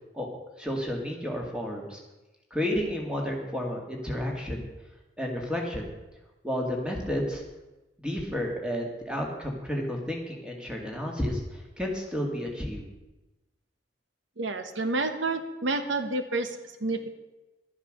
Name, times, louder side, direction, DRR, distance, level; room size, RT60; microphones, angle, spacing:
voice 1, 0.6-2.0 2.5-4.7 5.2-5.9 6.4-7.4 8.0-12.8, equal, 5° right, 0 dB, 2.1 m, -31 dB
voice 2, 14.4-17.1, right 2 dB, 80° right, 8 dB, 1.1 m, -29 dB
12.0 x 10.0 x 6.5 m, 1.1 s
head